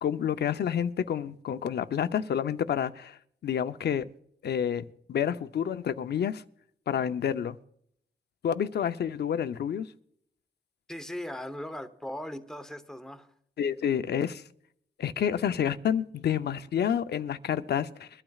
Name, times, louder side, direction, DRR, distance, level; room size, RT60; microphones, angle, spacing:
voice 1, 0.0-4.1 4.4-6.4 6.9-7.6 8.4-9.9 13.6-14.4 15.0-18.1, left 8 dB, 70° left, 0.6 m, -29 dB
voice 2, 10.9-13.3, left 1 dB, 5° left, 0.9 m, -38 dB
22.5 x 12.0 x 2.4 m
wide cardioid pair, 130°, 18 cm